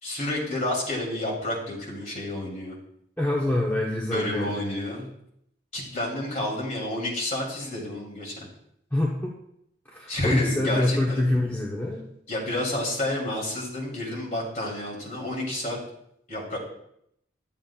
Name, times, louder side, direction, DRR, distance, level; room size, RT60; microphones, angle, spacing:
voice 1, 0.0-2.8 4.1-5.1 5.7-8.5 10.1-11.3 12.3-15.8 16.3-16.6, left 1 dB, 40° left, -4 dB, 2.9 m, -30 dB
voice 2, 3.2-4.7 8.9-9.3 9.9-12.0, left 1 dB, 10° left, -4 dB, 0.9 m, -25 dB
12.0 x 7.3 x 2.4 m, 0.74 s
head